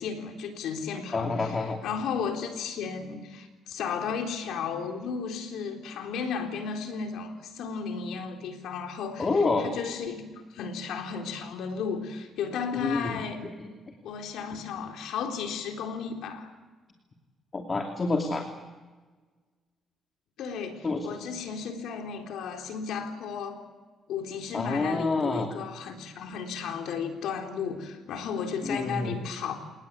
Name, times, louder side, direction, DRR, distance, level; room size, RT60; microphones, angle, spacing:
voice 1, 0.0-1.5 1.8-9.3 9.6-13.4 14.0-16.5 20.4-23.6 24.1-29.5, left 6 dB, 85° left, 3 dB, 3.9 m, -34 dB
voice 2, 1.1-1.8 9.2-9.7 12.7-13.2 13.6-13.7 17.5-18.4 20.8-21.1 24.5-25.5 28.6-29.2, left 3 dB, 35° left, 3 dB, 2.9 m, -28 dB
29.0 x 19.0 x 8.3 m, 1.4 s
cardioid pair, 90°, 0 cm